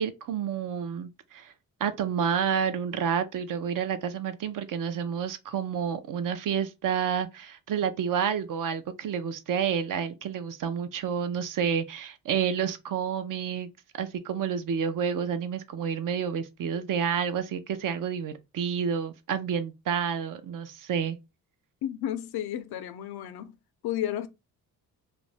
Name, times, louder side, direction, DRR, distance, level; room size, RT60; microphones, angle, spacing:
voice 1, 0.0-1.5 1.8-13.7 13.9-21.2, right 7 dB, 55° right, 0.5 m, -29 dB
voice 2, 21.8-23.6 23.8-24.3, left 11 dB, 80° left, 0.5 m, -32 dB
2.5 x 2.1 x 3.2 m
cardioid pair, 85°, 38 cm